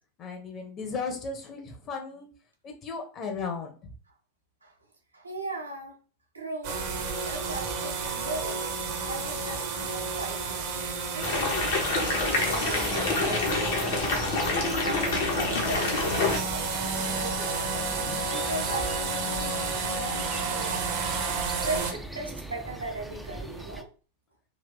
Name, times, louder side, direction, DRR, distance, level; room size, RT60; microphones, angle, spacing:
voice 1, 0.2-2.3 2.6-3.9, left 4 dB, 30° left, 4 dB, 0.9 m, -35 dB
voice 2, 5.1-6.0 6.3-6.8 7.2-10.7 11.1-17.9 18.3-21.1 21.6-23.9, right 2 dB, 80° right, 1 dB, 0.9 m, -38 dB
sound 1, 6.6-21.9, right 4 dB, 50° right, 0.8 m, -32 dB
sound 2, 11.2-16.4, left 3 dB, 55° left, 1.0 m, -27 dB
sound 3, 11.2-23.8, right 1 dB, ahead, 0.4 m, -40 dB
3.8 x 2.5 x 3.4 m, 0.38 s
figure-of-eight pair, 90°, 0 cm